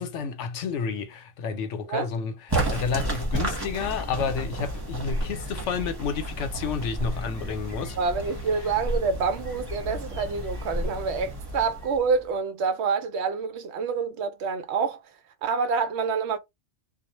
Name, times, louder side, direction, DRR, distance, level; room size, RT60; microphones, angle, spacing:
voice 1, 0.0-8.0, left 6 dB, 80° left, 1.0 m, -30 dB
sound 1, 2.5-12.3, right 1 dB, 20° right, 1.1 m, -32 dB
voice 2, 8.0-15.0 15.4-16.4, right 5 dB, 75° right, 0.8 m, -27 dB
2.3 x 2.1 x 3.0 m
omnidirectional pair, 1.2 m